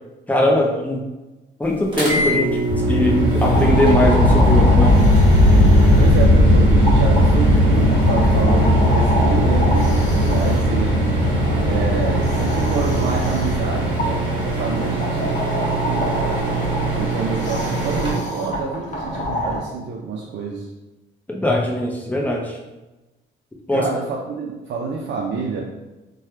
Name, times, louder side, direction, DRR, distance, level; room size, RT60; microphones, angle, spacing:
voice 1, 0.3-1.1 1.6-2.6 2.9-5.0 21.3-22.6 23.7-23.9, left 1 dB, 10° left, -1 dB, 0.6 m, -20 dB
sound 1, 1.9-18.1, right 3 dB, 25° right, 1.4 m, -24 dB
sound 2, 2.7-15.1, left 1 dB, 65° left, 0.6 m, -17 dB
sound 3, 3.4-19.6, equal, 40° left, 0.9 m, -28 dB
voice 2, 6.0-11.0 11.6-16.4 16.9-20.7 23.7-25.6, right 5 dB, 65° right, -2 dB, 0.5 m, -27 dB
3.2 x 2.2 x 2.8 m, 1.1 s
cardioid pair, 90°, 20 cm